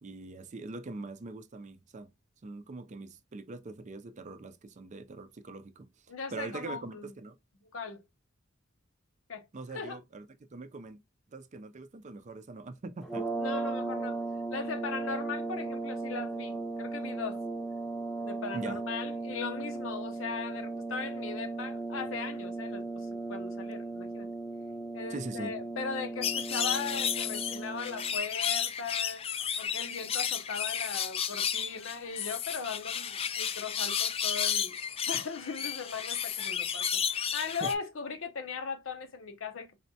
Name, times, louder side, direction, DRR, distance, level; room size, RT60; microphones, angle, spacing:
voice 1, 0.0-2.1 2.4-5.9 6.3-7.4 9.5-11.0 11.3-13.3 18.5-18.8 25.1-25.5 37.6-37.7, right 3 dB, 35° right, 0.4 m, -42 dB
voice 2, 6.1-7.1 7.7-8.0 9.3-9.4 9.7-10.0 13.4-14.2 14.5-17.4 18.2-24.3 24.9-29.2 29.6-34.8 35.1-39.8, left 5 dB, 80° left, 0.7 m, -38 dB
sound 1, 13.0-28.2, right 3 dB, 5° left, 0.8 m, -37 dB
sound 2, 26.2-37.7, left 8 dB, 30° left, 0.3 m, -32 dB
4.0 x 3.2 x 2.7 m
head